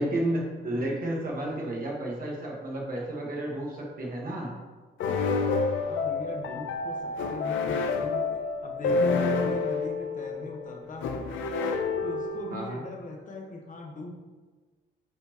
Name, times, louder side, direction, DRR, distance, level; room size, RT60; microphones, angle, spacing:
voice 1, 0.0-4.5 12.5-12.8, right 1 dB, 45° right, -2 dB, 1.6 m, -31 dB
sound 1, 5.0-12.7, left 4 dB, 75° left, 0.8 m, -28 dB
voice 2, 5.8-8.3 8.6-11.3 12.0-14.1, left 2 dB, 40° left, 1 dB, 1.3 m, -40 dB
8.8 x 4.4 x 3.0 m, 1.4 s
cardioid pair, 90°, 20 cm